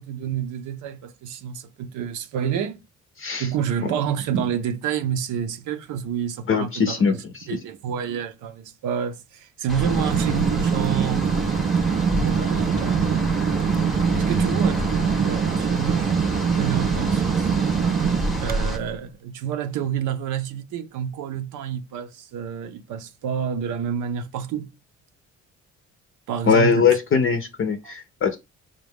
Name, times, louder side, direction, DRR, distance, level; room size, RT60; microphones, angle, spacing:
voice 1, 0.0-2.8 3.4-11.3 12.2-13.3 14.1-16.1 16.6-17.5 18.4-24.8 26.3-27.0 27.8-27.9, right 8 dB, 80° right, 0.6 m, -29 dB
voice 2, 6.5-7.1 26.5-28.4, left 6 dB, 45° left, 0.6 m, -20 dB
sound 1, 9.7-18.8, equal, ahead, 0.8 m, -29 dB
sound 2, 9.7-19.0, right 7 dB, 30° right, 0.4 m, -23 dB
5.0 x 2.3 x 3.4 m
cardioid pair, 90°, 30 cm